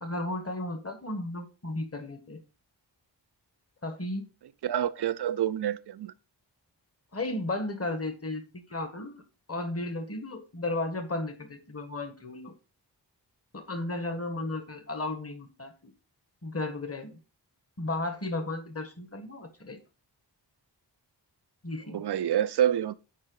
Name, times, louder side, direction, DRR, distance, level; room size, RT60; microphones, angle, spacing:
voice 1, 0.0-2.4 3.8-4.2 7.1-9.2 9.5-12.5 13.5-15.7 16.4-17.2 17.8-19.8 21.6-22.0, left 2 dB, 35° left, 1.4 m, -34 dB
voice 2, 4.6-6.1 21.9-23.0, right 10 dB, 65° right, 0.5 m, -27 dB
7.4 x 4.5 x 3.9 m
cardioid pair, 40°, 44 cm